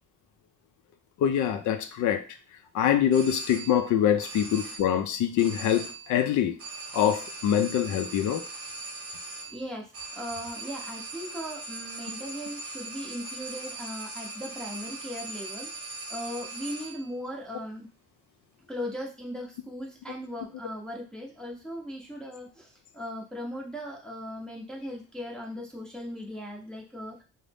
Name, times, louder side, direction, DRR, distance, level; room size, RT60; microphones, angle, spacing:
voice 1, 1.2-2.2 2.7-6.6 6.9-8.4, left 9 dB, 75° left, 8 dB, 0.5 m, -24 dB
sound 1, 3.1-3.9 4.2-5.0 5.4-6.2 6.6-17.1, right 3 dB, 50° right, 0.8 m, -40 dB
voice 2, 9.5-9.9 10.1-17.9 18.7-27.2, equal, ahead, -2 dB, 0.6 m, -38 dB
2.6 x 2.0 x 3.3 m, 0.34 s
cardioid pair, 90°, 30 cm